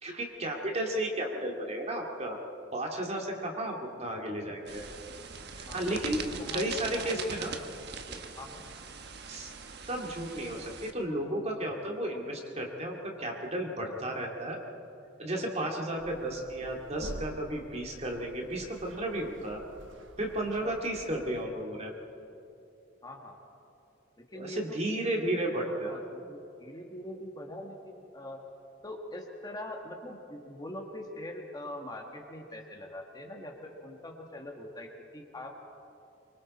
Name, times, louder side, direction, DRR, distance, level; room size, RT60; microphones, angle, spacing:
voice 1, 0.0-2.4 2.7-4.8 5.5-6.2 6.5-7.6 8.1-8.2 9.3-9.5 9.9-14.6 15.2-19.6 20.2-21.9 24.3-26.0, right 1 dB, 35° right, 1 dB, 2.4 m, -33 dB
sound 1, 4.7-10.9, right 5 dB, 60° right, 1.2 m, -41 dB
voice 2, 5.7-7.5 8.4-8.6 15.6-15.7 20.4-20.8 23.0-23.4 24.2-24.6 25.6-28.4 28.8-35.5, left 1 dB, 20° left, 1 dB, 1.8 m, -43 dB
sound 2, 16.0-21.4, right 1 dB, 80° right, 1.2 m, -48 dB
24.5 x 24.5 x 4.4 m, 2.7 s
head